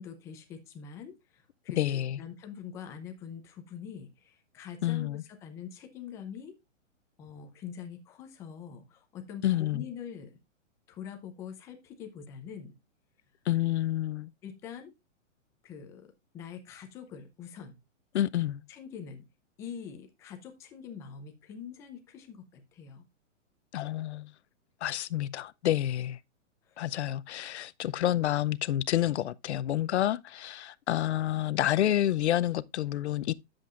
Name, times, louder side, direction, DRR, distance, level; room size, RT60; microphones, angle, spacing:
voice 1, 0.0-6.6 7.2-10.3 10.9-12.7 14.4-14.9 15.6-17.8 18.7-19.2 19.6-23.0 26.7-26.8, left 7 dB, 10° left, 0.5 m, -44 dB
voice 2, 1.8-2.2 4.8-5.2 9.4-9.9 13.5-14.3 18.1-18.6 23.7-24.3 24.8-26.2 26.8-33.3, left 13 dB, 60° left, 0.6 m, -29 dB
10.5 x 7.6 x 2.4 m
hypercardioid pair, 160°, 38 cm